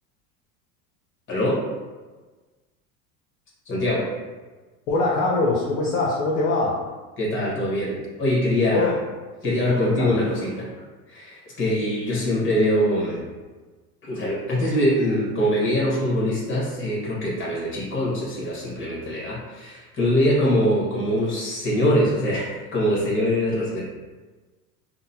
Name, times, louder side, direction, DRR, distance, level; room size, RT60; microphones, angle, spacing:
voice 1, 1.3-1.7 3.6-4.1 7.2-9.0 9.4-10.7 11.1-13.2 14.0-23.8, equal, 25° left, -5 dB, 1.3 m, -23 dB
voice 2, 4.9-6.8 8.7-9.0 9.5-10.2, left 3 dB, 45° left, -4 dB, 0.7 m, -23 dB
3.7 x 2.1 x 2.7 m, 1.3 s
hypercardioid pair, 90°, 46 cm